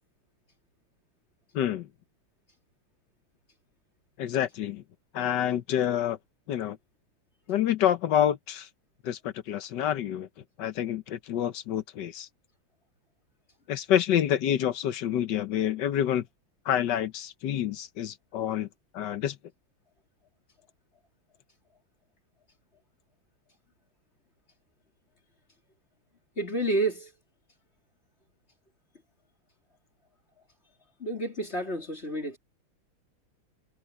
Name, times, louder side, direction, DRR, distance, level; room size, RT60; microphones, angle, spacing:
voice 1, 1.5-1.9 4.2-4.8 5.1-6.2 6.5-6.8 7.5-8.7 9.0-10.3 10.6-12.3 13.7-16.2 16.6-18.7 18.9-19.4, left 10 dB, 60° left, 1.4 m, -27 dB
voice 2, 26.4-27.1 31.0-32.4, right 2 dB, 30° left, 3.5 m, -29 dB
omnidirectional pair, 2.4 m